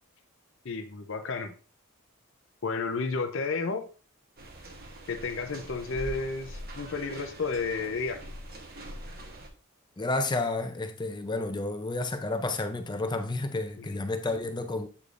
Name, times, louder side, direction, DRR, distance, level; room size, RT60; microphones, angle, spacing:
voice 1, 0.6-1.5 2.6-3.9 5.1-8.2 13.8-14.0, left 4 dB, 60° left, 0.6 m, -32 dB
sound 1, 4.4-9.5, equal, 45° right, 1.0 m, -43 dB
voice 2, 10.0-14.9, left 2 dB, 20° left, 0.5 m, -31 dB
8.3 x 4.9 x 2.5 m
head